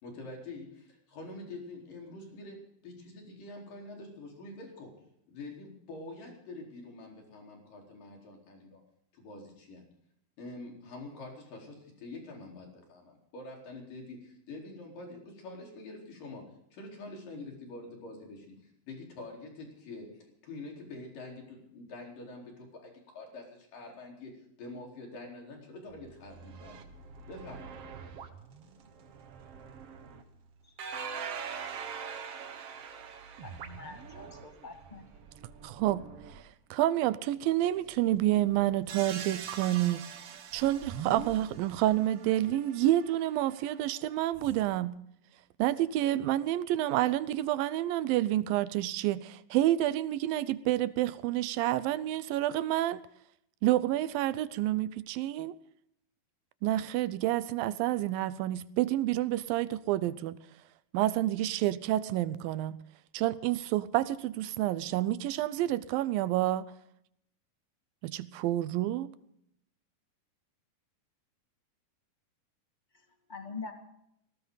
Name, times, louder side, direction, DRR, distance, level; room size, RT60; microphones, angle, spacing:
voice 1, 0.0-4.9 5.3-8.8 9.1-9.8 10.4-16.5 16.7-24.3 24.6-26.8 27.3-27.7, left 2 dB, 70° left, 5.9 m, -46 dB
sound 1, 25.9-30.2 30.8-36.4 37.6-44.6, right 6 dB, 55° right, 1.9 m, -44 dB
voice 2, 33.4-35.1 72.9-73.7, left 4 dB, 20° left, 1.2 m, -45 dB
voice 3, 35.6-36.1 36.3-36.4 36.7-40.1 40.5-45.0 45.6-53.0 53.6-55.6 56.6-60.4 60.9-62.8 63.1-66.7 68.0-69.1, right 14 dB, 85° right, 2.5 m, -29 dB
19.0 x 18.0 x 4.0 m
omnidirectional pair, 4.1 m